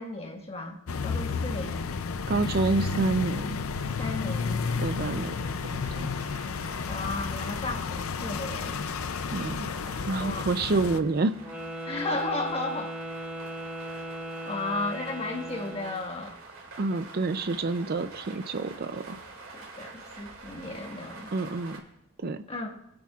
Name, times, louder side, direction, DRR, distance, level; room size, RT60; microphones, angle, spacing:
voice 1, 0.0-1.8 4.0-4.6 6.9-8.9 10.2-10.5 11.8-13.0 14.5-16.4 19.5-21.3 22.5-22.8, left 2 dB, 30° left, 1 dB, 1.6 m, -34 dB
sound 1, 0.9-11.0, left 5 dB, 85° left, 0.5 m, -32 dB
voice 2, 2.3-3.5 4.8-5.3 5.7-6.1 9.3-11.4 16.8-19.2 21.3-21.8 22.2-22.4, right 3 dB, 50° right, 10 dB, 0.5 m, -28 dB
sound 2, 3.7-21.8, right 3 dB, 85° right, 2.5 m, -48 dB
Wind instrument woodwind instrument, 11.4-16.0, right 1 dB, 5° right, 1.5 m, -37 dB
24.0 x 8.6 x 2.4 m, 0.79 s
head